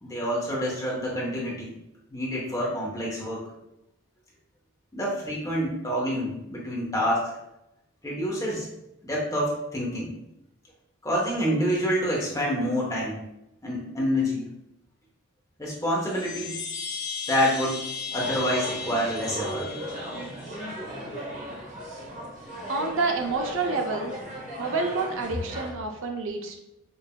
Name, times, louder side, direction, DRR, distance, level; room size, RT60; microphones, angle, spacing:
voice 1, 0.0-1.7 2.1-3.4 4.9-7.3 8.0-8.7 9.0-10.1 11.0-13.2 13.6-14.5 15.6-16.6 17.3-17.8 18.1-19.7, equal, 15° left, -4 dB, 0.9 m, -27 dB
Chime, 15.9-20.6, left 5 dB, 50° left, 1.3 m, -36 dB
sound 1, 18.1-25.7, right 1 dB, 35° right, 1.1 m, -36 dB
voice 2, 22.7-24.1 24.6-26.6, right 3 dB, 65° right, 2 dB, 0.5 m, -28 dB
5.3 x 2.7 x 2.2 m, 0.86 s
head